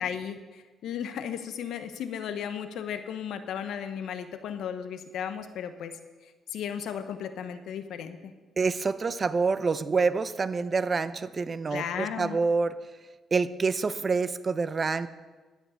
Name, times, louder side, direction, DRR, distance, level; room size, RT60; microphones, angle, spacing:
voice 1, 0.0-8.3 11.7-12.4, left 8 dB, 80° left, 10 dB, 1.0 m, -35 dB
voice 2, 8.6-12.7 13.3-15.1, right 4 dB, 35° right, 13 dB, 0.7 m, -27 dB
11.5 x 9.5 x 6.5 m, 1.3 s
cardioid pair, 90°, 0 cm